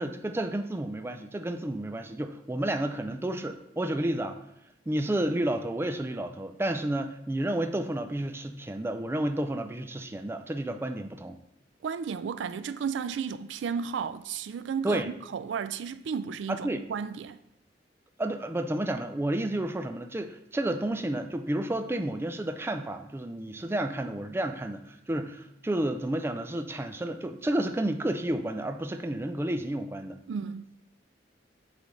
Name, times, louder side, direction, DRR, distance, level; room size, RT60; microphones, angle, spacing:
voice 1, 0.0-4.4 4.9-11.4 14.8-15.1 16.5-16.8 18.2-30.2, right 1 dB, 15° right, 0.4 m, -31 dB
voice 2, 11.8-17.4 30.3-30.7, right 6 dB, 85° right, 0.3 m, -33 dB
8.2 x 3.3 x 3.9 m
head